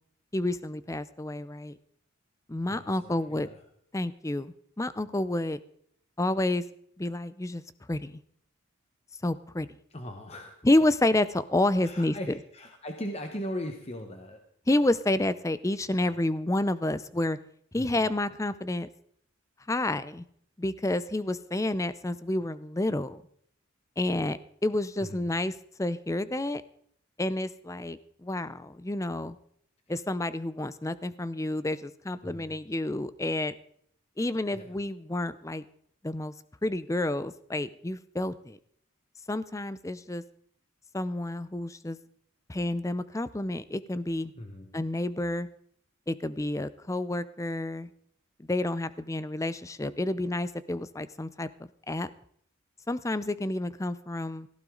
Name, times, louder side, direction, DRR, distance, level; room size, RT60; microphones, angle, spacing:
voice 1, 0.3-1.8 2.5-3.5 3.9-5.6 6.2-6.6 7.0-7.6 7.9-8.2 9.2-9.7 10.6-12.1 14.7-17.4 17.7-18.9 19.7-20.2 20.6-23.2 24.0-25.5 25.8-26.6 27.2-29.4 29.9-33.5 34.2-35.6 36.0-36.3 36.6-38.6 39.3-40.2 40.9-42.0 42.5-44.3 44.7-45.5 46.1-47.9 48.5-51.5 51.9-52.1 52.9-54.5, left 1 dB, 15° left, 15 dB, 0.5 m, -29 dB
voice 2, 2.7-3.6 9.9-10.6 11.8-14.4 16.0-16.2 17.8-18.0 25.0-25.3 32.2-32.6 34.5-34.7 44.3-44.7, equal, 30° left, 4 dB, 1.2 m, -39 dB
17.0 x 15.0 x 3.9 m, 0.66 s
head